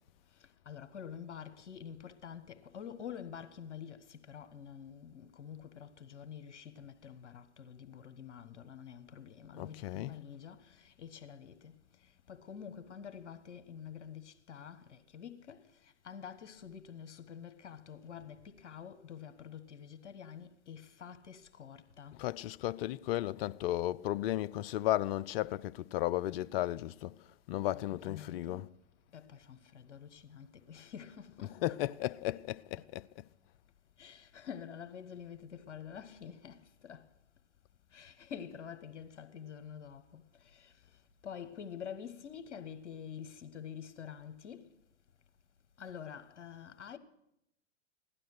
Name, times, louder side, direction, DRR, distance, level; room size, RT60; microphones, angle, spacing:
voice 1, 0.6-11.7 12.3-15.6 16.0-22.2 27.7-28.6 29.1-31.8 32.8-32.9 34.0-37.1 37.9-40.2 40.5-40.7 41.2-44.7 45.8-47.0, left 8 dB, 75° left, 1.4 m, -47 dB
voice 2, 9.6-10.1 22.2-27.2 27.5-28.7 31.4-33.1, left 14 dB, 55° left, 0.6 m, -34 dB
16.5 x 12.0 x 6.5 m
hypercardioid pair, 105°, 35 cm